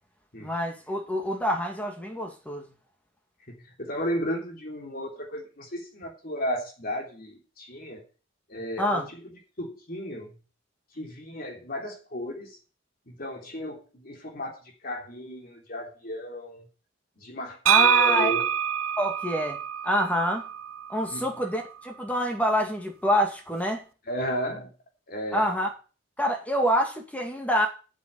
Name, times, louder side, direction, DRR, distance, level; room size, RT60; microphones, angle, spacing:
voice 1, 0.4-2.7 8.8-9.1 17.6-18.3 19.0-19.6 19.8-20.5 20.9-23.8 25.3-25.7 26.2-27.7, equal, 5° left, 2 dB, 2.4 m, -26 dB
voice 2, 3.5-8.0 8.5-9.3 9.6-10.4 10.9-12.6 13.1-16.7 17.2-18.4 21.1-21.3 24.1-24.7 25.1-25.5, equal, 45° left, 1 dB, 3.3 m, -34 dB
sound 1, 17.7-21.4, right 10 dB, 85° right, 0.6 m, -25 dB
8.3 x 7.4 x 8.2 m, 0.35 s
head